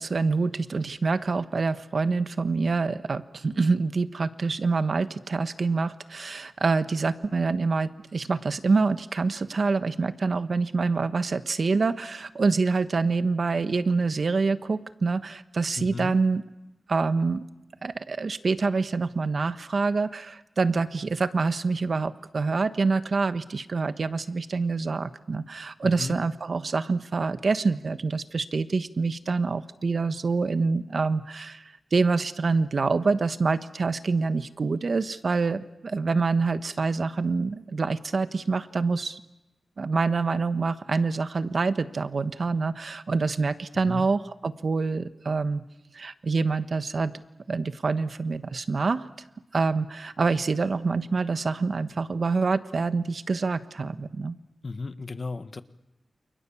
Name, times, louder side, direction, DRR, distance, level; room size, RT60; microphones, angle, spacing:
voice 1, 0.0-16.4 16.9-17.4 17.8-39.2 39.8-45.7 45.9-47.1 47.5-49.1 49.5-54.4, right 4 dB, 60° right, 11 dB, 1.3 m, -26 dB
voice 2, 15.8-16.1 25.8-26.2 43.9-44.1 54.6-55.6, left 3 dB, 50° left, 11 dB, 1.5 m, -34 dB
29.5 x 27.0 x 7.2 m, 0.96 s
wide cardioid pair, 90°, 0 cm